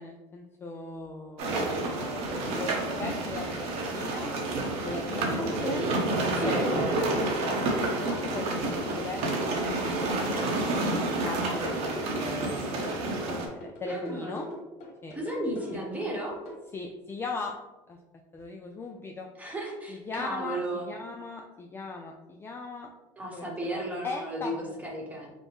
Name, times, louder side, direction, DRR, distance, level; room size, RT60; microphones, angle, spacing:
voice 1, 0.0-4.3 4.8-5.8 6.4-7.7 8.0-9.9 10.3-12.7 13.2-14.5 15.0-15.2 15.7-15.8 16.7-17.6 17.9-18.0 18.3-19.3 19.9-22.9 23.3-24.8, left 3 dB, 20° left, 1 dB, 0.3 m, -39 dB
sound 1, 1.4-13.5, right 2 dB, 65° right, 0.9 m, -29 dB
voice 2, 5.6-5.9 6.3-6.6 13.9-14.3 15.1-16.4 19.4-20.9 23.2-25.3, right 1 dB, 10° right, -2 dB, 1.0 m, -34 dB
sound 2, 7.2-16.5, equal, 70° left, 1.3 m, -42 dB
5.1 x 2.1 x 3.1 m, 1.0 s
cardioid pair, 125°, 12 cm